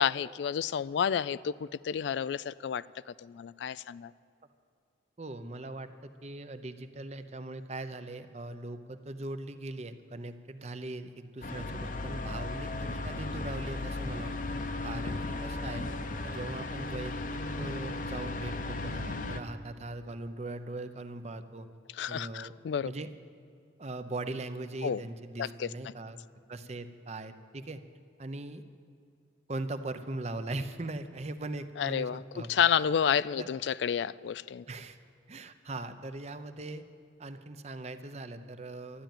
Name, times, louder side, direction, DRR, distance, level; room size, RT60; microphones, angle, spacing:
voice 1, 0.0-4.1 21.9-22.9 24.8-25.0 25.4-25.7 31.8-34.6, left 8 dB, 75° left, 18 dB, 0.3 m, -30 dB
voice 2, 5.2-14.4 14.8-15.9 16.2-17.1 17.6-21.7 22.1-22.5 22.8-23.1 23.8-26.2 26.5-27.8 28.2-28.6 29.5-32.5 33.4-33.5 34.7-35.0 35.3-36.8 37.2-39.0, right 2 dB, 35° right, 10 dB, 0.7 m, -40 dB
sound 1, 11.4-19.4, left 2 dB, 45° left, 0.8 m, -36 dB
12.5 x 10.5 x 9.1 m, 2.4 s
head